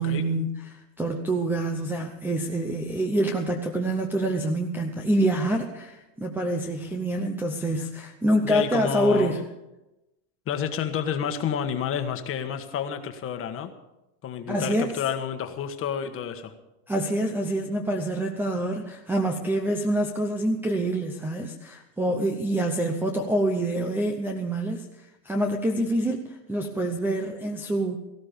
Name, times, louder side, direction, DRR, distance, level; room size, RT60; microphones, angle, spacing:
voice 1, 0.0-9.4 14.5-14.9 16.9-24.9 25.2-28.0, right 1 dB, 5° right, 4 dB, 0.7 m, -26 dB
voice 2, 8.4-9.4 10.5-13.7 14.2-16.5, left 8 dB, 25° left, 7 dB, 1.4 m, -30 dB
18.0 x 14.5 x 5.2 m, 0.96 s
supercardioid pair, 160°, 48 cm